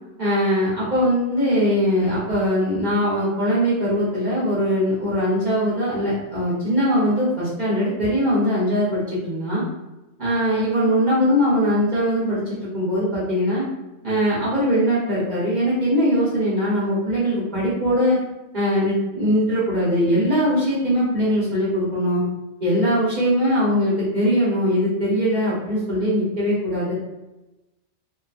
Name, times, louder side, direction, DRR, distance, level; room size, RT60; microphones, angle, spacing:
voice 1, 0.2-9.6 10.2-12.4 12.7-13.7 14.0-18.2 18.5-22.2 22.6-26.9, equal, 40° right, -8 dB, 0.9 m, -21 dB
2.8 x 2.3 x 2.4 m, 1.0 s
omnidirectional pair, 1.2 m